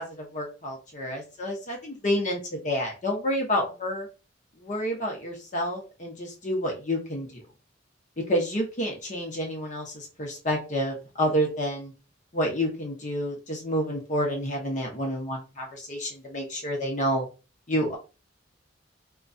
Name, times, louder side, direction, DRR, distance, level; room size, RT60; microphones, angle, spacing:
voice 1, 0.0-4.1 4.6-7.4 8.3-11.9 12.3-17.3 17.7-18.0, equal, 40° left, 0 dB, 0.9 m, -29 dB
2.9 x 2.3 x 2.6 m, 0.32 s
head